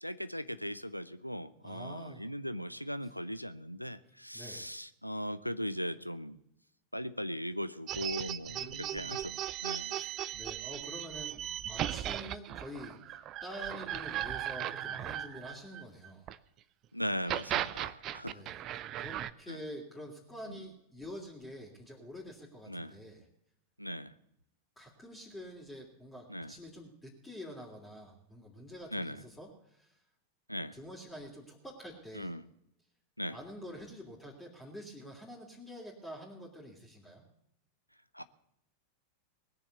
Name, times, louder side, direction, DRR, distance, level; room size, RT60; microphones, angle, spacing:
voice 1, 0.0-6.4 6.9-10.0 16.9-18.4 19.5-19.6 22.7-22.9 23.8-24.1 26.3-26.5 28.9-29.2 30.5-30.7 32.1-32.4 33.2-33.4 38.1-38.2, equal, 90° left, 14 dB, 0.6 m, -39 dB
voice 2, 1.6-2.2 4.3-4.7 8.5-9.1 9.9-16.3 18.3-18.6 19.0-23.3 24.8-30.0 30.7-32.3 33.3-37.2, equal, 10° left, -3 dB, 3.0 m, -47 dB
sound 1, 7.9-16.4 17.1-19.3, right 11 dB, 35° right, 0.6 m, -37 dB
19.5 x 7.1 x 8.1 m, 0.77 s
figure-of-eight pair, 90°, 0 cm